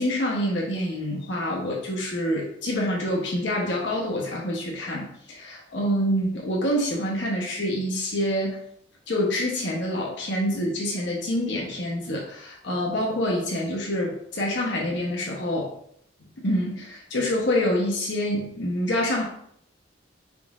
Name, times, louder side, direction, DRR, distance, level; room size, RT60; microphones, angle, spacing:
voice 1, 0.0-8.6 9.1-15.8 16.4-19.2, equal, 70° left, -2 dB, 0.8 m, -26 dB
5.0 x 3.7 x 2.4 m, 0.69 s
head